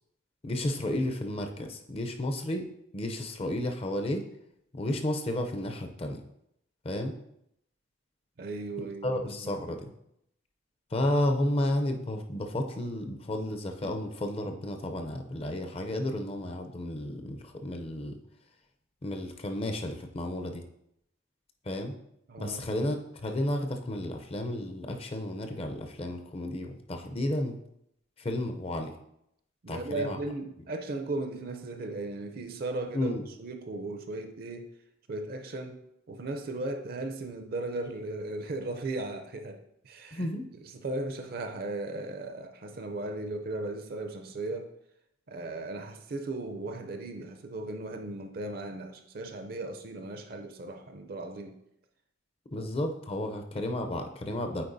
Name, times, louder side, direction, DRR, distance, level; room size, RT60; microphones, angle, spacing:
voice 1, 0.4-2.7 2.9-4.2 4.7-6.2 6.8-7.2 8.8-9.9 10.9-18.2 19.0-20.6 21.6-21.9 22.4-27.6 28.2-28.9 29.7-30.2 32.9-33.3 40.1-40.4 52.5-54.6, left 1 dB, 30° left, 5 dB, 0.5 m, -32 dB
voice 2, 8.4-9.6 22.3-22.8 29.6-33.1 33.4-34.7 35.1-35.8 36.1-40.3 40.7-44.7 45.3-51.6 52.5-52.7, right 2 dB, 45° right, 6 dB, 0.5 m, -37 dB
8.6 x 4.3 x 2.6 m, 0.77 s
head